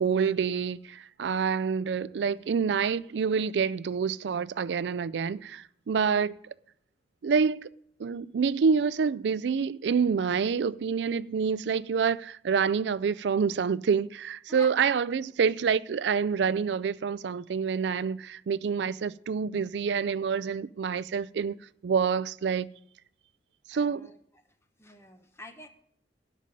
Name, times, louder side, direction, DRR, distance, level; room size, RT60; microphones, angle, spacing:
voice 1, 0.0-6.4 7.2-7.7 8.0-21.6 21.8-22.7 23.7-24.1, right 6 dB, 75° right, 0.4 m, -27 dB
voice 2, 23.7-24.2 24.8-25.7, left 2 dB, 15° left, 1.2 m, -47 dB
12.5 x 5.3 x 9.0 m
head